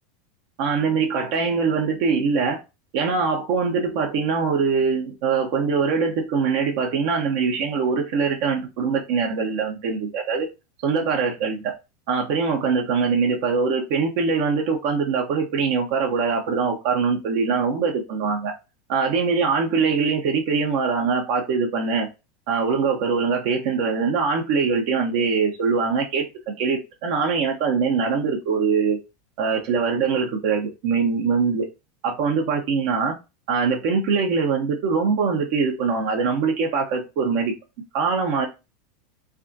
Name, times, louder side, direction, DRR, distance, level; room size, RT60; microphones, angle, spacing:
voice 1, 0.6-2.6 2.9-10.5 10.8-11.7 12.1-18.5 18.9-22.1 22.5-29.0 29.4-31.7 32.0-33.2 33.5-37.5 37.9-38.5, right 5 dB, 60° right, 0.7 m, -23 dB
3.4 x 2.4 x 2.6 m
hypercardioid pair, 95°, 0 cm